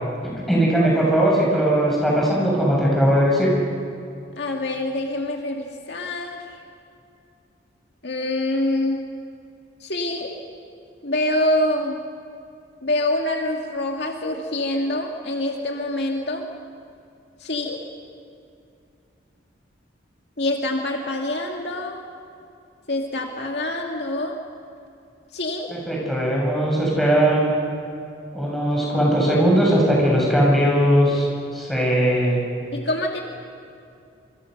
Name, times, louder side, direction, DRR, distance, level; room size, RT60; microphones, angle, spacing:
voice 1, 0.5-3.5 25.7-27.5 28.3-31.3 31.5-32.4, equal, ahead, -4 dB, 7.4 m, -19 dB
voice 2, 4.4-6.4 8.0-9.0 9.8-10.3 11.0-12.0 12.8-16.5 17.4-17.8 20.4-22.0 22.9-24.4 25.3-25.7 32.7-33.2, left 1 dB, 60° left, 1 dB, 2.3 m, -25 dB
27.5 x 25.0 x 6.7 m, 2.6 s
head